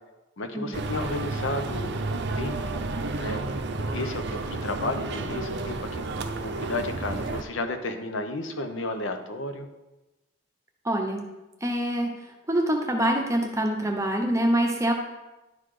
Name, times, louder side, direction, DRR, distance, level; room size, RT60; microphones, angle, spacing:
voice 1, 0.4-2.0 2.3-2.8 3.1-3.4 3.9-6.0 6.4-9.7, left 2 dB, 60° left, 6 dB, 0.8 m, -32 dB
sound 1, 0.7-7.4, right 2 dB, 55° right, 0.6 m, -31 dB
voice 2, 10.8-11.2 11.6-12.1 12.5-14.9, right 1 dB, 15° right, 2 dB, 0.8 m, -25 dB
11.0 x 4.1 x 4.9 m, 1.0 s
head